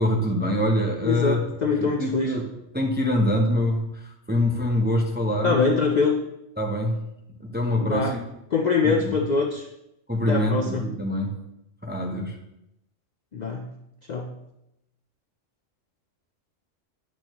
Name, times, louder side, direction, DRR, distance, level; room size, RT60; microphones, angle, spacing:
voice 1, 0.0-1.4 1.8-2.5 2.7-5.6 6.6-7.1 7.4-8.2 8.8-9.2 10.1-11.4 11.8-12.4, left 1 dB, 10° right, 1 dB, 0.6 m, -25 dB
voice 2, 1.0-2.3 5.4-6.2 7.8-8.1 8.5-9.7 10.3-10.9 13.3-13.7 14.1-14.3, left 4 dB, 50° left, 3 dB, 0.5 m, -23 dB
8.3 x 6.2 x 3.0 m, 0.85 s
omnidirectional pair, 1.3 m